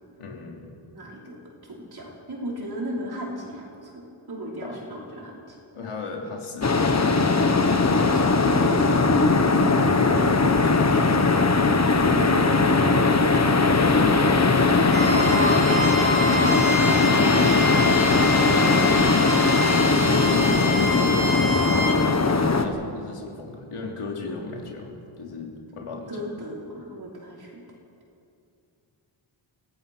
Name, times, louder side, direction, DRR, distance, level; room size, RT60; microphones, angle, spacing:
voice 1, 0.2-0.7 4.6-4.8 5.7-8.4 9.7-11.5 13.7-15.6 20.2-20.7 22.5-26.1, left 4 dB, 90° left, 0 dB, 3.5 m, -35 dB
voice 2, 0.9-1.4 1.6-5.6 8.4-10.3 12.1-13.6 16.4-17.9 18.5-20.0 20.3-21.6 26.1-27.6, equal, 45° right, -3 dB, 5.2 m, -33 dB
sound 1, 6.6-22.6, left 3 dB, 30° left, 1.3 m, -19 dB
Bowed string instrument, 14.9-22.0, equal, 65° right, 3.6 m, -28 dB
26.0 x 17.0 x 6.3 m, 2.6 s
wide cardioid pair, 155°, 50 cm